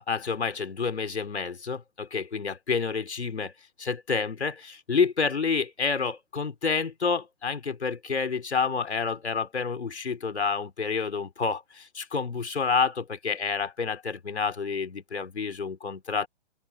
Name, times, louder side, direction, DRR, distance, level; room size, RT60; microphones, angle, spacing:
voice 1, 0.0-3.5 3.8-16.3, left 5 dB, 75° left, 4.1 m, -29 dB
open air
figure-of-eight pair, 125°, 33 cm